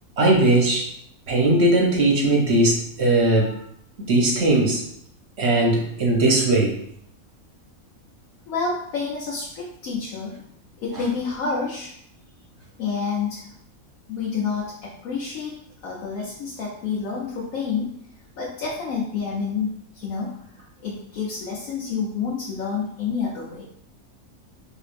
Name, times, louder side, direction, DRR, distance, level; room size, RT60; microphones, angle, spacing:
voice 1, 0.2-0.9 1.3-3.5 4.1-4.8 5.4-6.7, right 2 dB, 55° right, -2 dB, 0.9 m, -19 dB
voice 2, 3.3-3.6 8.5-10.4 10.8-12.0 12.8-13.5 14.1-18.0 18.4-23.6, left 5 dB, 70° left, -5 dB, 1.1 m, -29 dB
4.8 x 2.5 x 2.5 m, 0.68 s
omnidirectional pair, 1.5 m